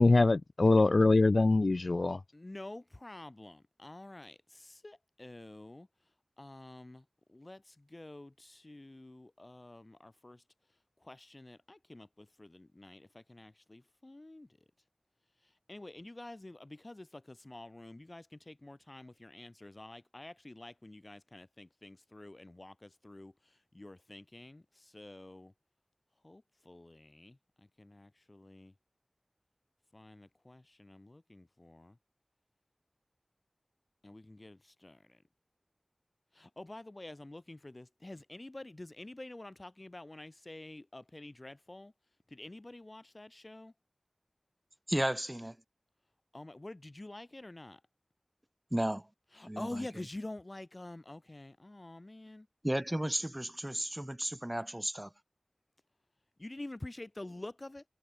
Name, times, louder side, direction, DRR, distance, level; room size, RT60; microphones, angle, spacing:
voice 1, 0.0-2.2, left 3 dB, 75° left, 0.7 m, -24 dB
voice 2, 2.3-5.9 6.4-10.4 11.0-14.5 15.7-23.3 23.7-25.5 26.2-27.4 27.8-28.7 29.9-32.0 34.0-35.2 36.4-41.9 42.3-43.7 46.3-47.8 49.4-52.5 56.4-57.8, left 2 dB, 45° left, 2.1 m, -48 dB
voice 3, 44.9-45.6 48.7-49.1 49.5-49.9 52.6-55.1, right 1 dB, 20° right, 1.9 m, -33 dB
wide cardioid pair, 50°, 0 cm